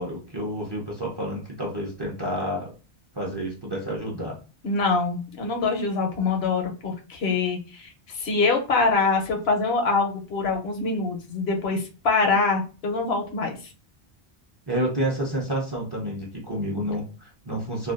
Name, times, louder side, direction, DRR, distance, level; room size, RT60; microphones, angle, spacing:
voice 1, 0.0-2.7 3.1-4.4 14.7-17.9, right 1 dB, 30° right, -3 dB, 0.5 m, -29 dB
voice 2, 4.6-13.6, left 4 dB, 75° left, 3 dB, 0.9 m, -24 dB
2.5 x 2.2 x 2.3 m, 0.34 s
omnidirectional pair, 1.1 m